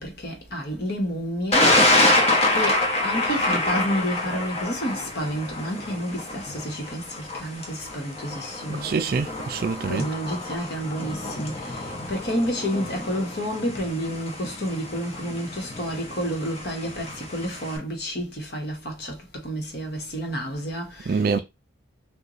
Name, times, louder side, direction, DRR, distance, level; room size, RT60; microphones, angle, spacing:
voice 1, 0.0-8.9 9.9-21.4, equal, 55° left, 1.1 m, -30 dB
Thunder, 1.5-17.8, left 1 dB, 30° left, 0.8 m, -27 dB
voice 2, 8.7-10.0 21.1-21.4, right 5 dB, 50° right, 0.4 m, -25 dB
3.0 x 2.3 x 3.8 m
head